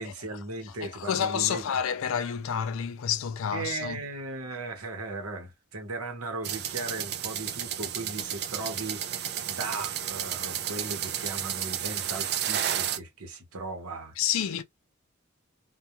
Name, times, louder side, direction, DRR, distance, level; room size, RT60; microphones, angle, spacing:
voice 1, 0.0-1.6 3.5-14.2, right 3 dB, 85° right, 0.9 m, -37 dB
voice 2, 0.7-4.0 14.2-14.6, left 8 dB, 65° left, 0.4 m, -29 dB
sound 1, 6.4-13.0, right 10 dB, 50° right, 0.4 m, -32 dB
2.3 x 2.2 x 2.8 m
head